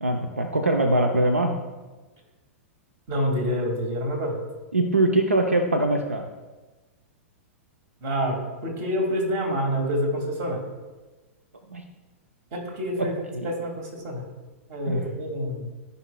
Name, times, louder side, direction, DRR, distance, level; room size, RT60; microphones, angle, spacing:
voice 1, 0.0-1.6 4.7-6.3 11.7-11.8 13.0-13.1 13.3-13.5 14.9-15.1, right 2 dB, 85° right, 5 dB, 0.7 m, -22 dB
voice 2, 3.1-4.4 8.0-10.6 12.5-14.2 14.7-15.7, equal, 40° right, 2 dB, 2.1 m, -27 dB
14.5 x 5.5 x 2.3 m, 1.2 s
figure-of-eight pair, 105°, 7 cm